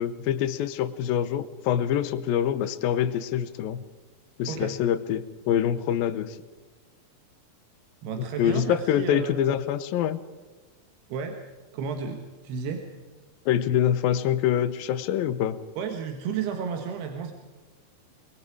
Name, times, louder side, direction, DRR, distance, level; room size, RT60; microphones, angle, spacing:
voice 1, 0.0-3.8 4.4-6.4 8.2-10.2 13.5-15.6, left 10 dB, 75° left, 13 dB, 2.6 m, -25 dB
voice 2, 4.5-4.8 8.0-9.5 11.1-11.4 11.7-12.8 15.8-17.3, right 6 dB, 90° right, 4 dB, 3.6 m, -32 dB
24.5 x 22.0 x 5.0 m, 1.3 s
omnidirectional pair, 4.5 m